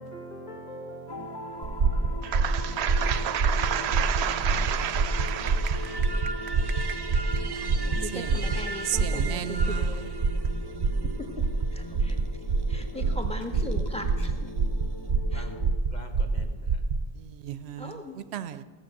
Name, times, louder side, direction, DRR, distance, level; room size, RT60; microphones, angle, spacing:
voice 1, 0.0-5.0 5.7-6.2 6.6-6.8 7.4-7.5 7.8-8.0 11.9-12.0 12.9-13.2 14.8-15.6 15.9-16.8, equal, 45° left, 1.4 m, -45 dB
sound 1, 1.1-15.8, left 1 dB, 30° left, 0.6 m, -42 dB
sound 2, 1.6-17.1, right 4 dB, 60° right, 0.9 m, -27 dB
voice 2, 2.2-6.0 8.1-8.2 9.0-9.7 17.4-17.9 18.3-18.6, right 10 dB, 90° right, 0.9 m, -31 dB
sound 3, 2.4-15.1, right 3 dB, 40° right, 0.3 m, -41 dB
voice 3, 7.8-10.1 11.2-11.4 11.7-12.2 12.5-14.5 15.3-15.5 17.8-18.2, left 1 dB, 5° left, 1.2 m, -39 dB
15.0 x 7.5 x 6.6 m
omnidirectional pair, 1.1 m